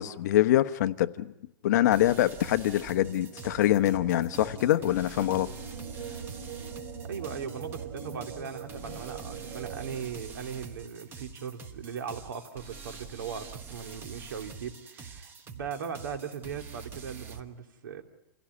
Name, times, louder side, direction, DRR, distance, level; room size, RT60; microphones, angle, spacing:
voice 1, 0.0-1.3 1.6-5.5, left 13 dB, 55° left, 1.0 m, -24 dB
sound 1, 1.9-17.4, right 5 dB, 20° right, 1.2 m, -46 dB
sound 2, 2.7-10.0, right 5 dB, 35° right, 2.6 m, -42 dB
voice 2, 7.0-18.0, right 7 dB, 85° right, 2.9 m, -39 dB
28.5 x 16.5 x 9.7 m
supercardioid pair, 165°, 11 cm